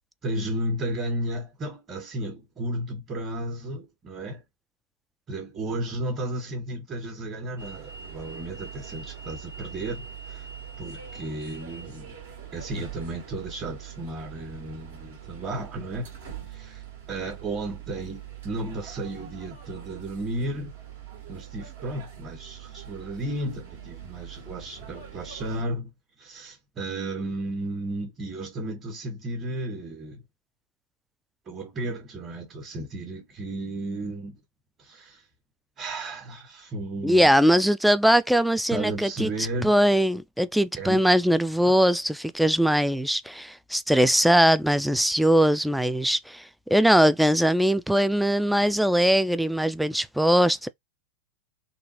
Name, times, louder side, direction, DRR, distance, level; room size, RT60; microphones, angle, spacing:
voice 1, 0.2-4.4 5.3-10.5 10.8-12.2 12.5-16.1 16.5-20.7 21.3-25.9 26.2-30.2 31.4-34.4 34.8-35.3 35.8-37.3 38.7-39.7 40.7-41.1 41.7-41.8, right 1 dB, 25° right, 1.4 m, -33 dB
sound 1, 7.6-25.6, right 8 dB, 60° right, 1.3 m, -43 dB
voice 2, 37.0-39.3 39.6-50.7, equal, ahead, 0.3 m, -21 dB
3.7 x 2.5 x 2.8 m
figure-of-eight pair, 90°, 0 cm